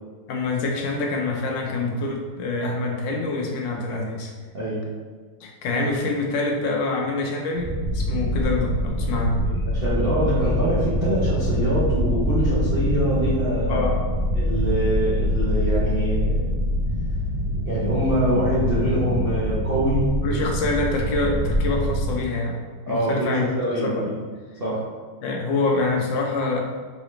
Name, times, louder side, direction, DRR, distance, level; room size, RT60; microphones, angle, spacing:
voice 1, 0.3-4.3 5.4-9.4 13.7-14.0 20.2-22.6 22.9-23.5 23.8-24.1 25.2-26.6, left 3 dB, 70° left, 0 dB, 1.2 m, -26 dB
voice 2, 4.5-4.9 9.4-13.8 14.3-16.5 17.7-20.1 22.9-24.2 24.6-24.9, right 1 dB, 45° right, -9 dB, 0.8 m, -24 dB
sound 1, 7.5-22.2, equal, 20° right, 1.0 m, -24 dB
4.0 x 3.9 x 3.1 m, 1.5 s
omnidirectional pair, 2.4 m